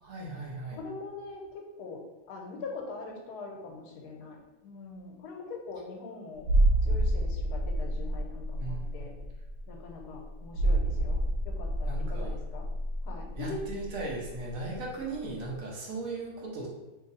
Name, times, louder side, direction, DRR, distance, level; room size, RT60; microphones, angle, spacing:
voice 1, 0.0-0.8 8.6-8.9 11.9-12.3 13.3-16.7, right 3 dB, 65° right, -2 dB, 1.0 m, -37 dB
voice 2, 0.7-6.5 6.8-9.1 9.7-12.7 13.0-13.7, left 3 dB, 80° left, 2 dB, 1.2 m, -42 dB
sound 1, 6.4-14.9 15.1-15.3, right 1 dB, 90° right, 1.2 m, -29 dB
2.9 x 2.6 x 3.9 m, 1.1 s
omnidirectional pair, 1.7 m